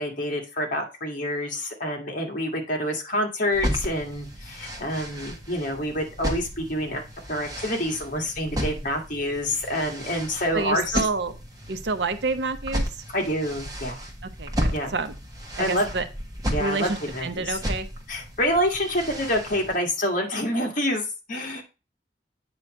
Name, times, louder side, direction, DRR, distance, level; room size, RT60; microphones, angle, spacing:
voice 1, 0.0-11.0 13.1-14.0 14.7-14.9 15.6-15.9 16.5-17.6 18.1-21.6, equal, 50° left, 1 dB, 1.9 m, -27 dB
sound 1, 3.5-19.8, equal, 20° right, 1.4 m, -33 dB
voice 2, 10.5-11.3 11.7-12.8 14.4-15.1 15.6-16.1 16.6-16.9 17.2-17.9, right 3 dB, 70° right, 10 dB, 0.8 m, -28 dB
8.7 x 3.1 x 6.3 m, 0.30 s
head